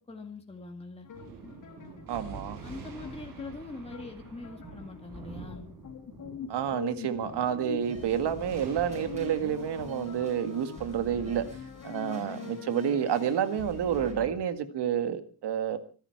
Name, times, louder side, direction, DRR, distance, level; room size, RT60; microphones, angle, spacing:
voice 1, 0.1-1.1 2.6-5.7, left 2 dB, 15° left, 3 dB, 1.8 m, -43 dB
sound 1, 1.0-14.3, left 6 dB, 50° left, 3.4 m, -43 dB
Thunder, 1.1-12.0, right 4 dB, 55° right, 6.0 m, -47 dB
voice 2, 2.1-2.6 6.5-11.4 11.8-15.8, right 9 dB, 80° right, 10 dB, 2.0 m, -29 dB
sound 2, 7.8-14.1, right 2 dB, 15° right, 5.6 m, -55 dB
25.0 x 11.5 x 4.7 m, 0.38 s
wide cardioid pair, 175°, 40 cm